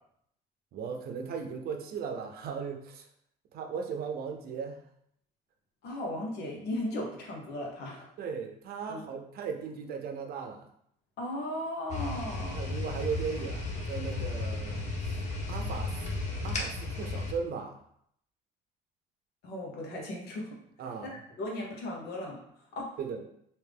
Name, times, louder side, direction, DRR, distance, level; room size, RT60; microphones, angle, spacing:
voice 1, 0.7-3.1 3.5-4.8 8.2-10.7 12.5-14.8 15.1-15.2 15.5-15.9 16.4-17.8 20.8-21.1 23.0-23.2, right 6 dB, 65° right, 4 dB, 0.6 m, -37 dB
voice 2, 5.8-8.1 8.9-9.0 11.2-12.6 19.4-20.5 21.4-22.4 22.7-23.2, left 1 dB, 75° left, -1 dB, 1.0 m, -36 dB
sound 1, 11.9-17.3, left 2 dB, 40° left, 0.8 m, -34 dB
3.3 x 2.7 x 3.4 m, 0.70 s
cardioid pair, 110°, 17 cm